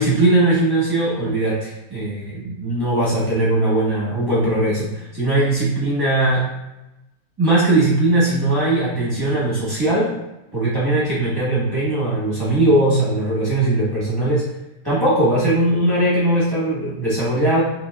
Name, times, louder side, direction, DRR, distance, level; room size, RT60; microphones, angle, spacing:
voice 1, 0.0-6.4 7.4-10.1 10.5-14.4 14.8-17.6, right 1 dB, 15° right, -9 dB, 1.2 m, -19 dB
5.8 x 2.9 x 2.3 m, 0.93 s
omnidirectional pair, 1.5 m